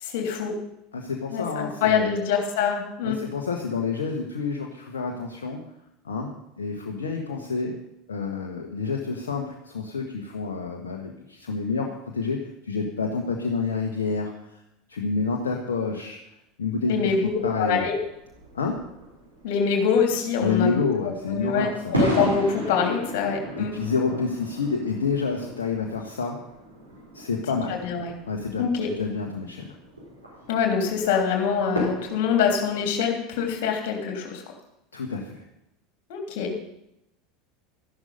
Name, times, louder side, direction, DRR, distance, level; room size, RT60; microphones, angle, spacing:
voice 1, 0.0-0.5 1.3-3.2 16.8-17.3 17.6-17.9 19.4-23.7 27.8-28.1 28.6-28.9 30.5-34.4 36.1-36.6, left 6 dB, 55° left, 2 dB, 3.3 m, -25 dB
voice 2, 0.9-2.1 3.0-5.6 6.0-7.8 8.1-14.6 14.9-16.2 16.6-17.1 17.4-17.8 18.5-18.9 20.4-21.9 23.6-26.4 27.1-27.9 28.3-29.7 34.9-35.4, left 4 dB, 70° left, 1 dB, 1.5 m, -28 dB
sound 1, 17.0-32.9, right 1 dB, 85° right, 5.1 m, -35 dB
13.0 x 11.5 x 5.4 m, 0.85 s
figure-of-eight pair, 75°, 0 cm